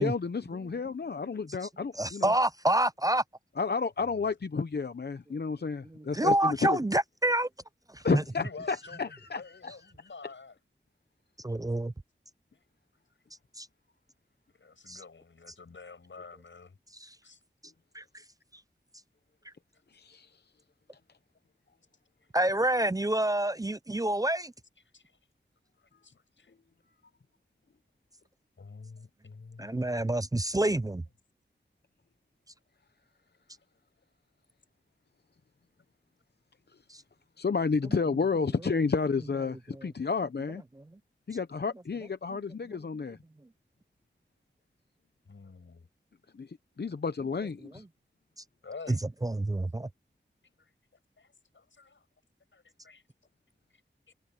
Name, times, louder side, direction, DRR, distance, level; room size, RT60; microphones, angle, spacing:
voice 1, 0.0-2.3 3.6-6.8 8.0-9.4 19.9-20.3 37.4-40.6 41.3-43.2 46.4-47.8, left 5 dB, 60° left, 0.8 m, -31 dB
voice 2, 1.9-3.2 5.9-7.5 7.9-8.2 11.4-11.9 13.6-13.7 14.9-15.0 17.0-17.1 17.9-18.0 22.3-24.5 29.6-31.0 36.9-37.0 39.7-39.9 40.8-40.9 42.3-42.4 42.7-42.8 48.9-49.0 49.2-49.9, right 1 dB, 20° right, 0.5 m, -28 dB
voice 3, 8.4-10.6 14.5-16.8 17.2-17.4 24.9-25.0 26.0-26.5 28.6-30.0 45.2-45.9 48.6-49.0 50.6-50.7 51.2-52.1 52.5-53.0 54.1-54.2, left 4 dB, 85° left, 6.9 m, -48 dB
wide cardioid pair, 65°, 19 cm